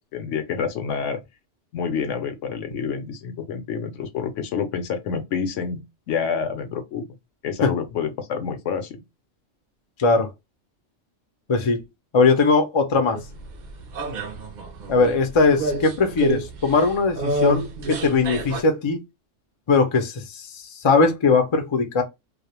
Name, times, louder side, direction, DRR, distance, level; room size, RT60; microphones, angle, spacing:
voice 1, 0.1-1.2 1.7-7.1 7.4-9.0, left 6 dB, 80° left, 0.9 m, -28 dB
voice 2, 11.5-11.8 12.1-13.2 14.9-19.0 19.7-22.0, left 4 dB, 45° left, 0.4 m, -20 dB
sound 1, 13.1-18.6, right 2 dB, 60° right, 0.5 m, -29 dB
2.4 x 2.0 x 2.9 m
omnidirectional pair, 1.3 m